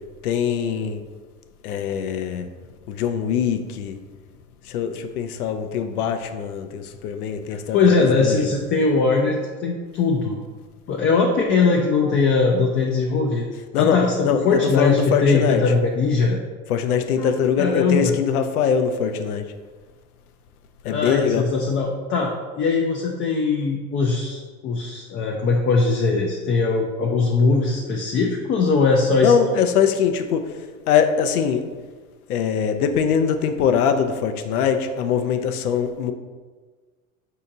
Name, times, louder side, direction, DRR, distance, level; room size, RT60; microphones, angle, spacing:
voice 1, 0.2-1.0 1.6-2.5 2.9-4.0 4.7-8.5 13.7-14.0 14.2-15.6 16.7-19.4 20.8-21.4 29.2-30.6 30.9-31.6 32.3-36.1, left 7 dB, 85° left, 7 dB, 0.6 m, -22 dB
voice 2, 7.7-10.4 10.9-13.5 13.7-16.4 17.2-17.3 17.6-18.1 20.9-29.6, left 4 dB, 25° left, 0 dB, 0.4 m, -20 dB
4.3 x 2.8 x 3.7 m, 1.4 s
hypercardioid pair, 95°, 44 cm